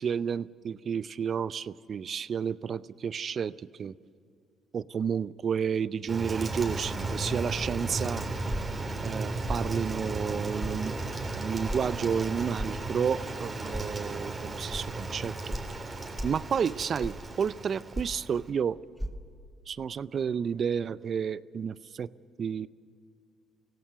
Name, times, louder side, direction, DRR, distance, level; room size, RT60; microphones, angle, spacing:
voice 1, 0.0-3.5 3.8-3.9 4.7-8.2 9.0-15.6 16.2-18.8 19.7-22.1 22.4-22.7, right 7 dB, 50° right, 17 dB, 0.6 m, -31 dB
Rain, 6.1-18.5, right 2 dB, 30° right, 3.4 m, -35 dB
sound 1, 8.5-8.8 9.5-9.7 10.6-10.8 11.7-11.8 12.6-12.8 13.7-13.9 14.7-14.8 15.5-15.7 16.1-16.4 17.0-17.3 17.9-18.2 19.0-19.1, equal, ahead, 1.7 m, -34 dB
25.5 x 17.0 x 6.8 m, 2.4 s
supercardioid pair, 70°, 0 cm